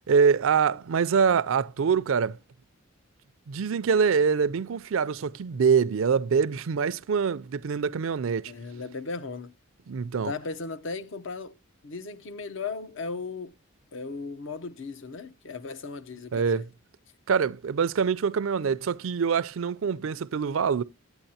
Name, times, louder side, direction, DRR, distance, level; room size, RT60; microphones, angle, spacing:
voice 1, 0.1-2.4 3.5-8.5 9.9-10.3 16.3-16.6 17.3-20.8, right 6 dB, 70° right, 0.4 m, -24 dB
voice 2, 8.5-9.5 10.2-11.6 11.8-13.5 13.9-16.7, left 4 dB, 60° left, 0.6 m, -36 dB
8.9 x 8.7 x 2.7 m
head